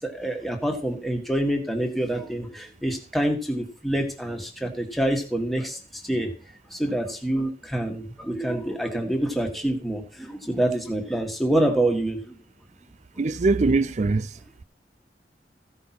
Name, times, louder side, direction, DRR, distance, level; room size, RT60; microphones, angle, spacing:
voice 1, 0.0-6.3 6.7-12.3 13.2-13.3, right 1 dB, ahead, 1.6 m, -26 dB
voice 2, 13.2-14.3, right 3 dB, 40° right, 0.4 m, -22 dB
15.0 x 5.6 x 5.9 m
head